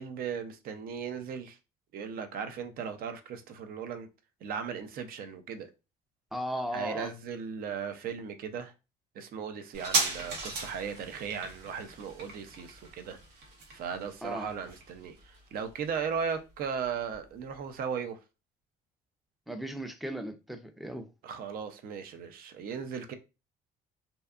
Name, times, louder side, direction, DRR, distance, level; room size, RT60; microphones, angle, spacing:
voice 1, 0.0-1.6 1.9-4.1 4.4-5.7 6.7-8.7 9.2-13.2 13.7-18.2 21.2-23.1, right 6 dB, 60° right, 0.5 m, -37 dB
voice 2, 6.3-7.1 14.2-14.5 19.5-21.1, equal, ahead, 0.3 m, -36 dB
sound 1, 9.7-16.8 17.1-17.2, right 3 dB, 80° right, 0.9 m, -36 dB
2.6 x 2.3 x 2.3 m
cardioid pair, 110°, 17 cm